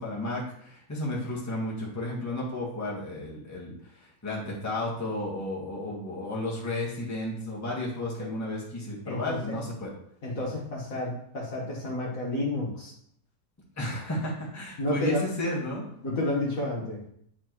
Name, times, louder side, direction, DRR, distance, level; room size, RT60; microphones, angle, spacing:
voice 1, 0.0-3.7 4.0-9.9 13.8-15.8, left 1 dB, 10° left, -5 dB, 1.4 m, -33 dB
voice 2, 9.0-9.6 10.2-12.9 14.8-15.3 16.0-17.0, left 1 dB, 50° left, -3 dB, 1.8 m, -31 dB
8.7 x 4.5 x 3.1 m, 0.67 s
omnidirectional pair, 1.9 m